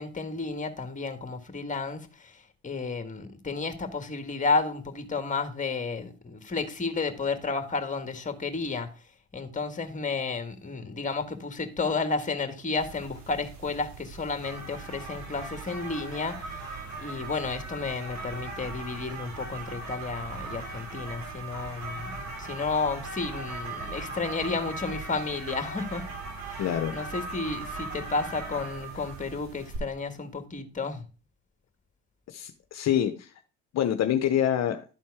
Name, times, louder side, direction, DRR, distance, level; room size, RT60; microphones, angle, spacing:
voice 1, 0.0-2.3 2.6-8.9 9.3-16.7 17.0-26.1 26.4-26.7 26.9-31.0, left 4 dB, 25° left, 1.7 m, -32 dB
sound 1, 12.8-29.8, right 3 dB, 65° right, 3.1 m, -39 dB
voice 2, 26.6-26.9 32.3-33.3 33.7-34.8, left 10 dB, 60° left, 0.8 m, -26 dB
11.5 x 4.3 x 4.8 m
supercardioid pair, 80°, 30 cm